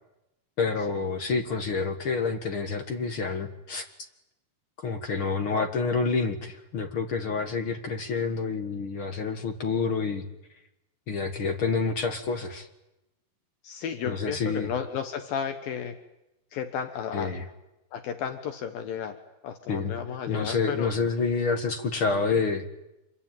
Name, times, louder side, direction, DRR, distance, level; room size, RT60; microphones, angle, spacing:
voice 1, 0.6-3.9 4.8-10.3 11.1-12.7 14.0-14.7 17.1-17.4 19.7-20.0 20.3-22.6, left 4 dB, 50° left, 6 dB, 1.7 m, -28 dB
voice 2, 13.6-16.0 16.5-17.4 17.9-19.2 19.4-20.9, left 8 dB, 70° left, 8 dB, 3.0 m, -33 dB
26.5 x 23.0 x 9.2 m, 0.92 s
omnidirectional pair, 4.5 m